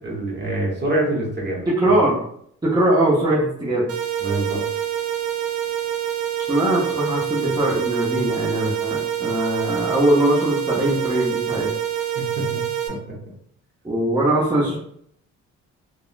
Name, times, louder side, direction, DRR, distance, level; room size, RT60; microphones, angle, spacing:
voice 1, 0.0-2.0 4.2-4.6 12.1-12.6, right 1 dB, 35° right, -2 dB, 1.1 m, -25 dB
voice 2, 1.7-2.2 2.6-3.9 6.5-11.7 13.8-14.8, right 1 dB, 15° right, -6 dB, 0.8 m, -21 dB
sound 1, 3.9-12.9, right 10 dB, 85° right, 0.6 m, -26 dB
3.3 x 2.2 x 2.5 m, 0.66 s
cardioid pair, 90°, 30 cm